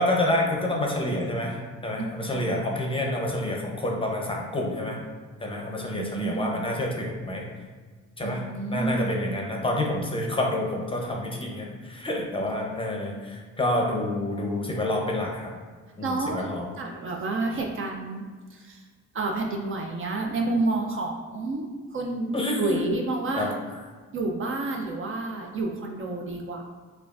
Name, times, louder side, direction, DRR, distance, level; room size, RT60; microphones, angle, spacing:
voice 1, 0.0-1.6 1.8-5.0 5.4-7.4 8.2-8.4 8.7-15.5 16.0-16.1 16.3-16.7 22.3-22.8 23.4-23.5, left 1 dB, 20° left, 0 dB, 0.6 m, -28 dB
voice 2, 2.2-2.7 5.8-6.6 8.2-9.3 16.0-16.5 16.8-18.2 18.5-18.8 19.1-23.5 24.1-26.6, right 2 dB, 45° right, 1 dB, 0.5 m, -30 dB
4.8 x 2.4 x 2.4 m, 1.5 s
cardioid pair, 90°, 30 cm